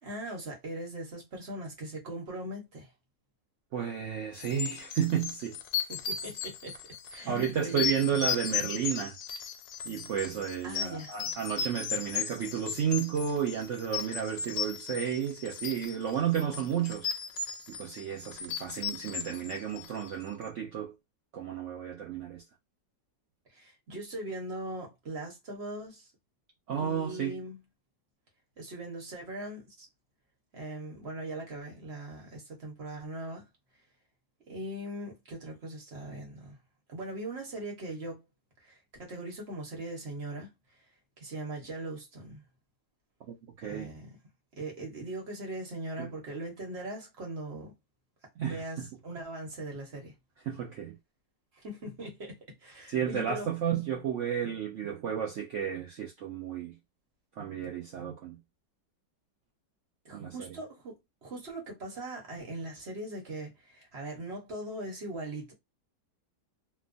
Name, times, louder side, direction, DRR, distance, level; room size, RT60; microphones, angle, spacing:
voice 1, 0.0-2.9 5.9-6.8 7.1-7.9 10.6-11.1 23.5-26.1 26.8-27.6 28.6-29.9 30.5-33.4 34.5-36.6 36.9-38.2 38.6-40.5 41.2-42.4 43.6-44.2 44.6-47.7 48.4-50.1 51.5-53.5 60.0-65.5, right 1 dB, 45° right, 1.0 m, -40 dB
voice 2, 3.7-5.6 7.3-9.1 9.9-17.1 17.7-20.9 21.3-22.4 26.7-27.4 43.3-43.9 46.0-46.1 48.4-48.9 50.5-51.0 52.9-56.8 57.4-58.4 60.1-60.5, right 8 dB, 75° right, 0.6 m, -32 dB
sound 1, 4.4-20.2, left 7 dB, 90° left, 1.3 m, -36 dB
3.0 x 2.2 x 2.5 m
omnidirectional pair, 1.9 m